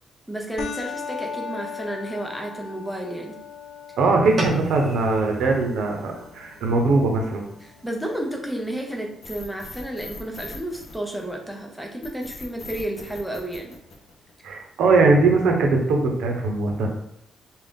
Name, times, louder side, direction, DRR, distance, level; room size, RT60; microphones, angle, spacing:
voice 1, 0.3-3.4 7.6-13.7, right 1 dB, ahead, 1 dB, 0.6 m, -32 dB
sound 1, 0.6-9.6, left 6 dB, 65° left, 0.4 m, -39 dB
voice 2, 4.0-7.4 14.4-16.9, right 3 dB, 85° right, 1 dB, 0.8 m, -20 dB
sound 2, 4.2-8.9, right 1 dB, 35° right, 0.7 m, -36 dB
sound 3, 9.2-11.5 12.0-14.5, left 3 dB, 50° left, 0.8 m, -40 dB
3.7 x 2.4 x 3.6 m, 0.75 s
cardioid pair, 150°, 0 cm